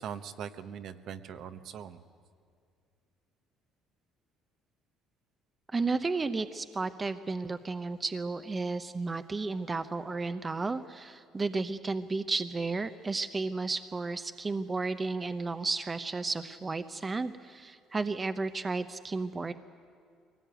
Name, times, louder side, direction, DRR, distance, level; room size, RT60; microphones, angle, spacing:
voice 1, 0.0-2.0, right 8 dB, 65° right, 8 dB, 1.1 m, -41 dB
voice 2, 5.7-19.5, right 3 dB, 25° right, 10 dB, 0.8 m, -33 dB
22.5 x 18.5 x 9.1 m, 2.2 s
cardioid pair, 100°, 0 cm